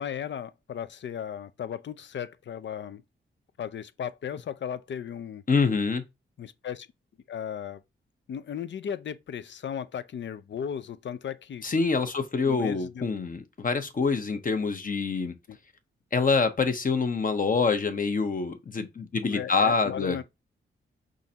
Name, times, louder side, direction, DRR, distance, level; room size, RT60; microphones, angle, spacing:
voice 1, 0.0-3.0 3.6-5.4 6.4-6.9 7.3-7.8 8.3-11.6 12.4-13.0 15.5-15.6 19.3-20.2, left 8 dB, 60° left, 0.4 m, -36 dB
voice 2, 5.5-6.0 11.6-15.3 16.1-20.2, left 4 dB, 40° left, 0.8 m, -26 dB
5.1 x 3.7 x 2.8 m
wide cardioid pair, 90°, 21 cm